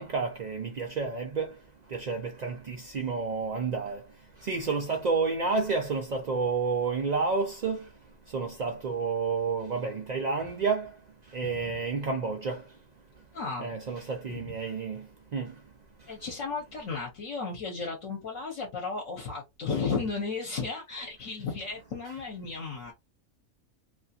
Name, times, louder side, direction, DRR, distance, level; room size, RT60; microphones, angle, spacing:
voice 1, 0.0-1.5 1.9-4.0 4.5-7.8 8.3-10.9 11.3-12.6 13.6-15.0 15.3-15.5, right 4 dB, 80° right, 0.3 m, -30 dB
voice 2, 13.3-13.7 14.3-14.5 16.1-22.9, left 4 dB, 65° left, 1.1 m, -34 dB
2.9 x 2.4 x 2.6 m
omnidirectional pair, 1.5 m